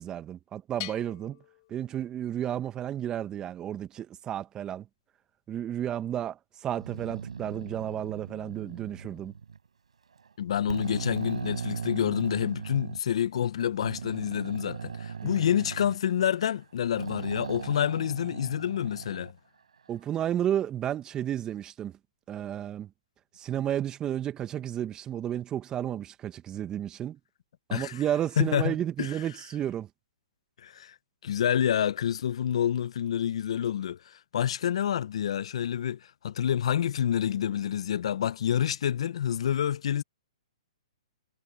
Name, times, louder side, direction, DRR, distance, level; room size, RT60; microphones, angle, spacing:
voice 1, 0.0-1.4 1.7-4.9 5.5-9.3 15.2-15.4 19.9-22.0 22.3-22.9 23.3-27.2 27.7-29.9, right 10 dB, 20° right, 1.7 m, -32 dB
Bell, 0.8-2.5, left 21 dB, 45° left, 4.3 m, -44 dB
sound 1, 6.7-9.6 10.2-10.3 10.7-13.0 13.8-16.6 17.0-19.3, right 6 dB, 75° right, 4.5 m, -38 dB
voice 2, 10.4-19.3 27.7-27.9 28.4-28.7 29.0-29.1 30.6-30.9 31.2-36.0 36.2-40.0, left 9 dB, 65° left, 1.1 m, -28 dB
hypercardioid pair, 130°, 3 cm